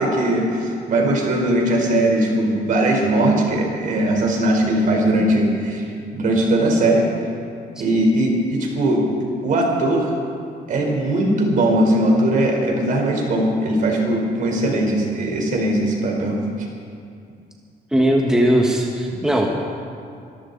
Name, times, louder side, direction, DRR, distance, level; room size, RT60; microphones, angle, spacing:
voice 1, 0.0-5.8 6.1-7.1 7.8-9.1 9.4-10.1 10.7-16.4, right 1 dB, 55° right, 0 dB, 3.8 m, -19 dB
voice 2, 17.9-19.5, right 1 dB, 5° right, -1 dB, 1.4 m, -18 dB
24.5 x 14.0 x 3.9 m, 2.3 s
cardioid pair, 140°, 16 cm